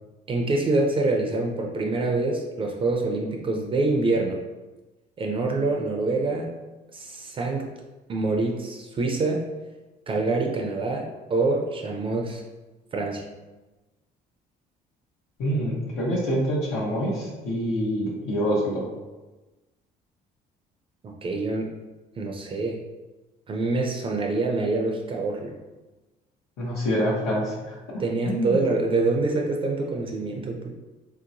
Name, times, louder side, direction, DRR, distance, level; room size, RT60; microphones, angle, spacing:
voice 1, 0.3-4.4 5.2-6.5 6.9-7.7 8.1-9.4 10.1-12.4 12.9-13.2 21.0-21.7 22.2-22.8 23.5-25.5 28.0-30.7, right 3 dB, 30° right, 1 dB, 0.4 m, -25 dB
voice 2, 15.4-18.8 26.6-28.6, equal, 85° left, -7 dB, 0.9 m, -26 dB
3.1 x 2.8 x 2.6 m, 1.2 s
cardioid pair, 110°, 17 cm